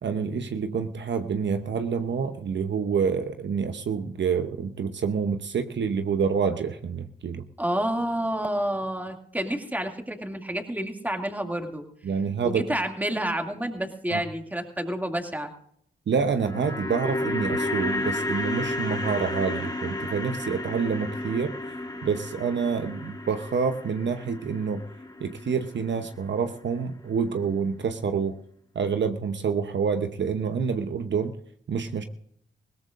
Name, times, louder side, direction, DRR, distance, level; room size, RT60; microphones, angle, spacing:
voice 1, 0.0-7.5 12.0-12.7 14.1-14.2 16.1-21.6 22.0-24.8 25.2-28.4 28.7-31.4 31.7-32.0, right 6 dB, 60° right, 8 dB, 0.9 m, -27 dB
voice 2, 7.6-11.8 12.4-15.5, right 1 dB, 10° right, 3 dB, 2.4 m, -29 dB
sound 1, 16.2-26.5 26.7-26.8, left 2 dB, 20° left, 1.7 m, -32 dB
20.5 x 17.0 x 2.6 m, 0.67 s
cardioid pair, 55°, 21 cm